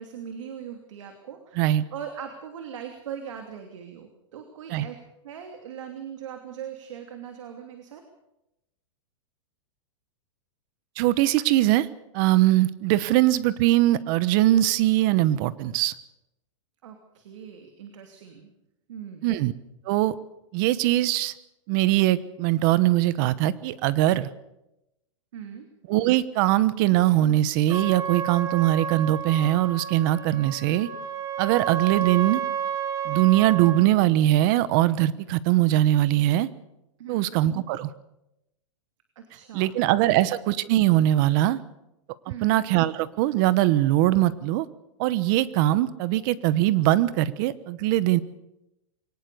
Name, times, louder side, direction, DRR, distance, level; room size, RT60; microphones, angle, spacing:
voice 1, 0.0-5.0 5.2-8.0 16.8-18.5 18.9-19.3 25.3-25.7 37.0-37.4 39.2-39.7 40.0-40.2 42.3-42.6, right 8 dB, 70° right, 5 dB, 2.9 m, -40 dB
voice 2, 11.0-11.9 12.1-15.9 19.2-19.5 19.9-20.1 20.5-21.3 21.7-24.3 25.9-30.9 31.4-32.4 33.0-36.5 37.1-37.9 39.5-41.6 42.3-44.7 45.0-48.2, right 15 dB, 40° right, 17 dB, 1.1 m, -21 dB
Trumpet, 27.7-33.9, right 8 dB, 20° right, 1.8 m, -31 dB
23.0 x 18.5 x 6.9 m, 0.89 s
supercardioid pair, 150°, 16 cm